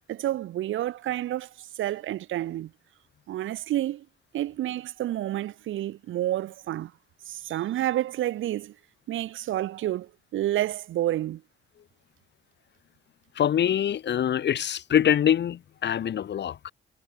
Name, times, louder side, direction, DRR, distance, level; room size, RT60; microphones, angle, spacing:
voice 1, 0.1-2.7 3.3-4.1 4.3-6.9 7.3-8.7 9.1-11.4, right 13 dB, 80° right, 3.4 m, -29 dB
voice 2, 13.3-16.7, left 9 dB, 60° left, 2.9 m, -24 dB
cardioid pair, 90°, 20 cm